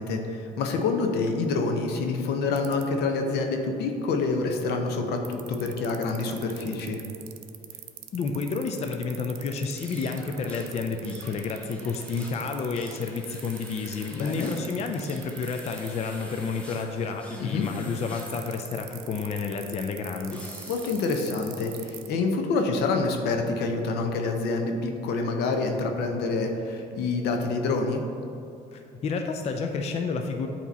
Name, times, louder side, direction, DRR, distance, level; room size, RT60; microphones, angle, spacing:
voice 1, 0.0-7.0 14.2-14.5 17.4-17.6 20.7-28.0, left 3 dB, 75° left, 4 dB, 0.7 m, -27 dB
sound 1, 2.6-2.8 5.2-15.9 18.2-22.1, right 16 dB, 85° right, 0.4 m, -41 dB
voice 2, 8.1-20.4 28.7-30.5, left 4 dB, 40° left, 4 dB, 0.4 m, -30 dB
sound 2, 9.7-22.1, equal, 5° left, 1.0 m, -48 dB
8.3 x 2.9 x 4.1 m, 2.7 s
cardioid pair, 110°, 17 cm